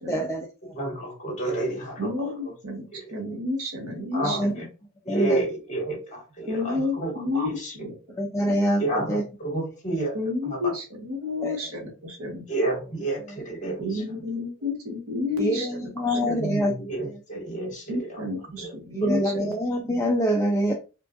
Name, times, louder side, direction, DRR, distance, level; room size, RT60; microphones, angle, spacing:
voice 1, 0.1-0.7 4.2-4.5 5.1-5.4 8.2-9.2 11.4-11.6 15.4-16.7 18.9-20.7, equal, 15° left, 1 dB, 0.4 m, -25 dB
voice 2, 0.7-2.1 4.1-4.6 5.1-7.1 7.4-7.7 8.8-10.2 10.5-10.7 12.5-13.8 16.3-18.1 19.0-19.5, right 2 dB, 35° left, -1 dB, 1.8 m, -30 dB
voice 3, 2.0-4.7 6.5-7.9 8.4-8.5 10.1-12.5 13.8-16.4 17.9-19.5, left 3 dB, 80° right, 1 dB, 1.2 m, -31 dB
4.6 x 2.4 x 2.5 m, 0.32 s
head